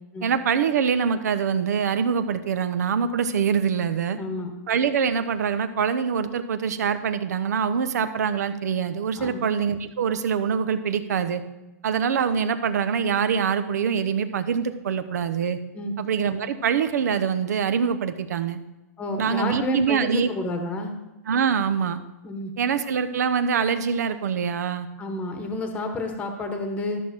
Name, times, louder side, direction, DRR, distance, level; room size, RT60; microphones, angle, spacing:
voice 1, 0.2-4.2 4.7-11.4 11.8-15.6 16.0-18.6 19.2-20.3 21.3-22.0 22.6-24.9, right 7 dB, 80° right, 11 dB, 0.9 m, -24 dB
voice 2, 4.1-4.5 9.2-9.5 15.7-15.9 19.0-20.9 22.2-22.5 25.0-27.0, left 2 dB, 15° left, 5 dB, 1.1 m, -29 dB
12.5 x 6.4 x 4.3 m, 1.0 s
hypercardioid pair, 155°, 9 cm